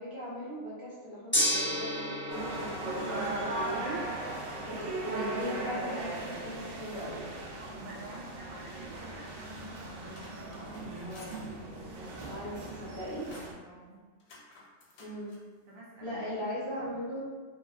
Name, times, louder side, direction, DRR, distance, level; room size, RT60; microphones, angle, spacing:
voice 1, 0.0-4.0 4.6-7.3 11.0-11.4 12.3-13.3 15.0-15.3 16.0-17.2, equal, 40° left, -10 dB, 0.4 m, -39 dB
Gong, 1.3-11.5, equal, 10° left, 0.8 m, -38 dB
sound 1, 2.3-13.5, right 2 dB, 65° right, 0.6 m, -38 dB
voice 2, 7.6-11.3 13.6-14.1 15.7-16.5 16.8-16.9, right 2 dB, 85° right, -4 dB, 1.2 m, -49 dB
sound 2, 9.9-11.4 11.9-12.6 12.9-13.6 14.2-15.4, left 2 dB, 65° left, 0.8 m, -54 dB
3.2 x 2.4 x 2.3 m, 1.4 s
omnidirectional pair, 1.4 m